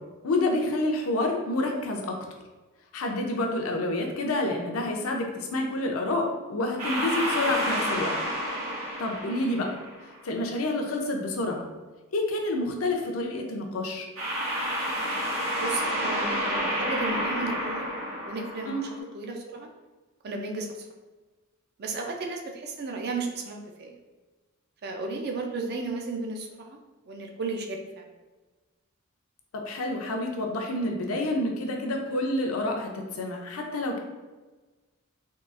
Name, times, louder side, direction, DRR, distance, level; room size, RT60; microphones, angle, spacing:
voice 1, 0.2-2.0 2.9-8.1 9.0-9.7 10.2-11.6 12.1-14.1 18.6-18.8 29.5-34.0, left 2 dB, 80° left, 2 dB, 0.5 m, -28 dB
sound 1, 6.8-10.1 14.2-19.0, equal, 80° right, 1.1 m, -30 dB
voice 2, 15.6-17.9 18.3-18.7 19.1-19.7 20.2-20.7 21.8-24.0 24.8-26.8 27.1-28.1, right 3 dB, 50° right, 2 dB, 0.4 m, -34 dB
3.7 x 2.3 x 2.4 m, 1.2 s
head